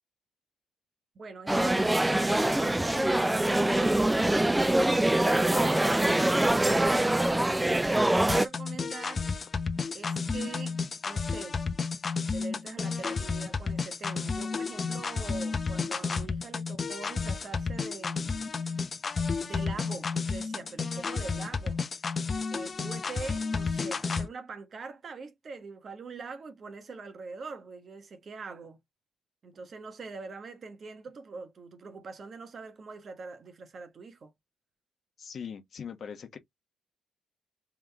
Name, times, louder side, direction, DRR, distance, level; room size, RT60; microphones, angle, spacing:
voice 1, 1.1-5.8 6.4-9.3 9.9-11.6 12.3-18.5 19.4-22.1 22.5-28.8 29.4-34.3, right 4 dB, 45° right, 1.2 m, -43 dB
sound 1, 1.5-8.5, right 1 dB, 10° right, 0.4 m, -24 dB
sound 2, 8.3-24.3, left 4 dB, 35° left, 0.7 m, -32 dB
voice 2, 35.2-36.4, left 7 dB, 55° left, 1.2 m, -41 dB
3.7 x 3.5 x 3.4 m
cardioid pair, 90°, 0 cm